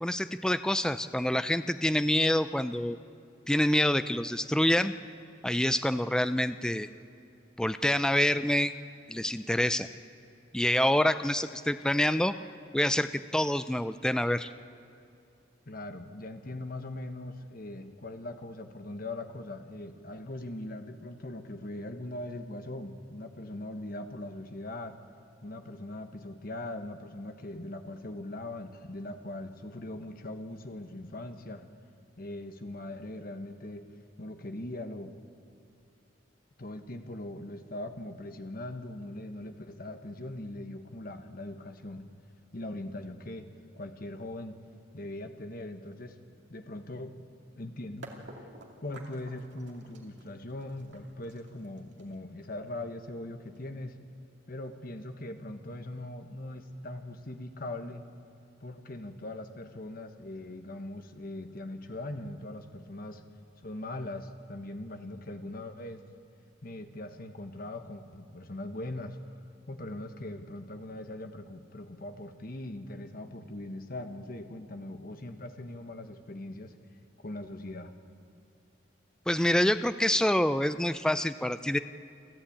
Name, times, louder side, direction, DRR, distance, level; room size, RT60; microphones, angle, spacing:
voice 1, 0.0-3.0 3.5-4.9 5.4-6.9 7.6-8.7 9.1-9.9 10.5-12.3 12.7-14.5 79.3-81.8, left 1 dB, 5° left, 11 dB, 0.4 m, -26 dB
voice 2, 15.7-25.0 25.4-31.6 32.2-33.8 34.2-35.1 36.6-42.1 42.5-44.6 44.9-46.2 46.5-47.2 47.6-48.1 48.8-54.0 54.5-58.0 58.6-63.2 63.6-66.0 66.6-69.4 69.7-76.7 77.2-77.9, left 1 dB, 50° left, 7 dB, 1.3 m, -40 dB
sound 1, 48.0-53.9, right 2 dB, 70° right, 2.6 m, -51 dB
29.0 x 11.5 x 8.7 m, 2.6 s
head